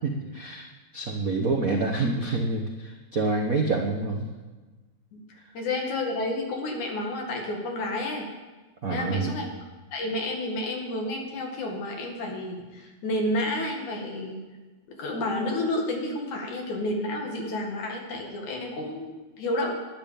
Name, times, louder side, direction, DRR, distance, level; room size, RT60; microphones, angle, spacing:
voice 1, 0.0-0.7 0.9-4.3 8.8-9.4, right 3 dB, 75° right, 1 dB, 0.7 m, -27 dB
voice 2, 5.6-8.3 8.9-9.5 9.9-14.4 15.0-19.7, left 1 dB, 85° left, 1 dB, 3.4 m, -30 dB
11.5 x 10.5 x 7.0 m, 1.2 s
omnidirectional pair, 3.3 m